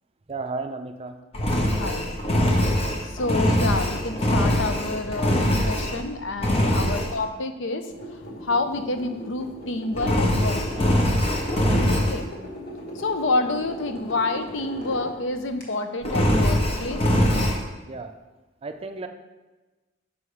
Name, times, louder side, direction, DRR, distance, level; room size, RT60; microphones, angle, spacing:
voice 1, 0.3-1.2 6.7-6.9 11.6-11.8 17.9-18.1 18.6-19.1, right 3 dB, 30° right, 7 dB, 0.4 m, -34 dB
Engine, 1.3-6.1 6.4-7.1 10.0-12.2 16.0-17.6, equal, 30° left, 0.8 m, -22 dB
voice 2, 1.8-2.1 3.1-7.9 8.4-11.0 11.9-12.3 13.0-17.0, left 2 dB, 65° left, 8 dB, 0.6 m, -28 dB
sound 1, 7.9-15.6, equal, 45° left, 1.5 m, -39 dB
5.7 x 5.6 x 4.9 m, 1.2 s
head